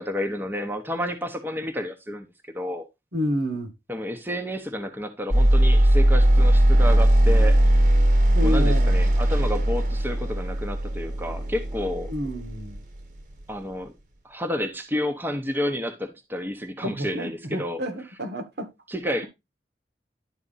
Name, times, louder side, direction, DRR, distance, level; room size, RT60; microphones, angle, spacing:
voice 1, 0.0-2.3 2.5-2.8 3.9-7.6 8.4-12.1 13.5-13.9 14.2-17.8 18.9-19.2, left 1 dB, 10° right, 1.0 m, -30 dB
voice 2, 3.1-3.7 8.3-8.9 12.1-12.8 16.8-18.7, equal, 70° right, 1.9 m, -29 dB
sound 1, 5.3-13.4, right 1 dB, 50° right, 1.5 m, -19 dB
11.0 x 4.3 x 4.1 m
head